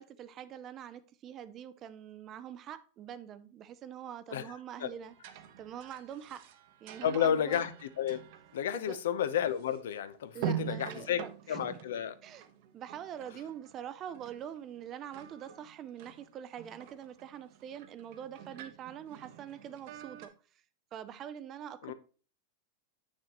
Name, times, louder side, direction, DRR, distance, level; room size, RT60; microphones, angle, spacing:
voice 1, 0.0-5.1 5.6-6.4 6.8-7.7 8.7-9.0 10.3-11.1 11.5-11.8 12.2-12.5 12.7-20.3 20.9-21.9, right 9 dB, 25° right, 0.5 m, -44 dB
sound 1, 5.0-10.0 10.3-13.8 14.1-14.9 15.1-20.3, right 9 dB, 50° right, 0.9 m, -45 dB
voice 2, 7.0-7.7 8.0-8.2 8.5-12.1 21.8-21.9, left 9 dB, 80° left, 0.7 m, -31 dB
7.3 x 6.4 x 3.0 m
supercardioid pair, 160°, 0 cm